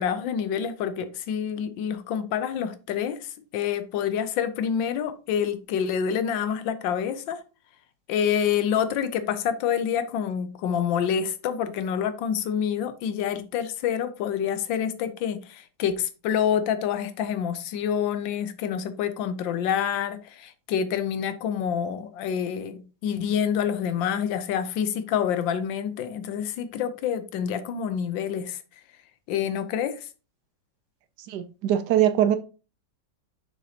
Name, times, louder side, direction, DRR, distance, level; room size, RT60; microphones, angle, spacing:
voice 1, 0.0-7.4 8.1-28.6 29.3-30.1, left 8 dB, 85° left, 1.4 m, -27 dB
voice 2, 31.3-32.4, right 11 dB, 70° right, 1.1 m, -22 dB
6.5 x 6.4 x 2.8 m
omnidirectional pair, 2.0 m